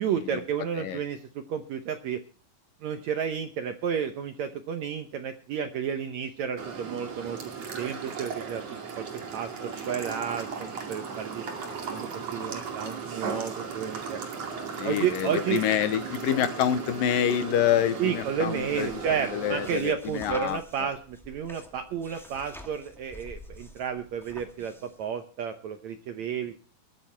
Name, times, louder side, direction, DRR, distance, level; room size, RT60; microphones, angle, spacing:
voice 1, 0.0-2.2 2.8-9.1 9.3-11.5 11.9-14.2 14.8-15.6 18.0-26.5, right 8 dB, 70° right, 7 dB, 1.7 m, -32 dB
sound 1, 6.6-19.8, right 5 dB, 50° right, 3.2 m, -36 dB
voice 2, 14.8-18.9 19.3-20.9, left 10 dB, 75° left, 11 dB, 2.6 m, -27 dB
sound 2, 18.4-25.0, equal, ahead, 1.3 m, -48 dB
22.0 x 9.0 x 4.4 m, 0.38 s
omnidirectional pair, 4.3 m